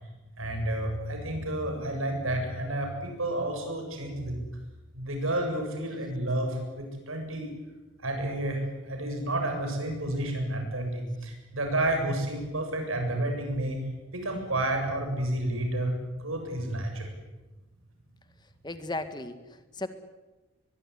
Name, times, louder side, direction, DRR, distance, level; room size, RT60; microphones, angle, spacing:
voice 1, 0.4-4.4 4.9-7.5 8.0-13.8 14.1-17.1, right 1 dB, 90° right, 4 dB, 7.6 m, -30 dB
voice 2, 18.6-19.9, left 2 dB, 20° left, 9 dB, 1.8 m, -36 dB
23.0 x 21.0 x 9.7 m, 1.1 s
head